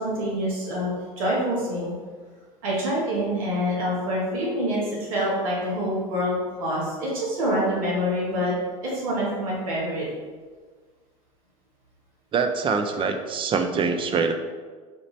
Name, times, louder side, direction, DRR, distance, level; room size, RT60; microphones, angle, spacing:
voice 1, 0.0-1.9 2.6-8.5 8.8-10.1, equal, 75° right, -5 dB, 1.2 m, -26 dB
voice 2, 12.3-14.3, right 5 dB, 30° right, 6 dB, 0.4 m, -24 dB
4.2 x 2.5 x 3.1 m, 1.5 s
hypercardioid pair, 80°, 18 cm